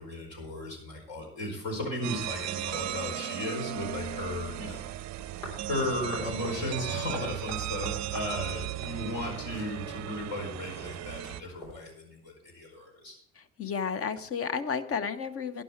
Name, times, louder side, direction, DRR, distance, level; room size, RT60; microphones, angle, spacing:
voice 1, 0.0-4.9 5.7-13.2, left 1 dB, 55° left, 0 dB, 4.8 m, -35 dB
sound 1, 2.0-11.4, right 13 dB, 40° right, 0.6 m, -36 dB
sound 2, 5.1-11.7, equal, 85° left, 3.6 m, -46 dB
voice 2, 13.6-15.6, left 6 dB, 35° left, 13 dB, 0.9 m, -32 dB
12.0 x 11.0 x 4.4 m, 0.73 s
figure-of-eight pair, 60°, 41 cm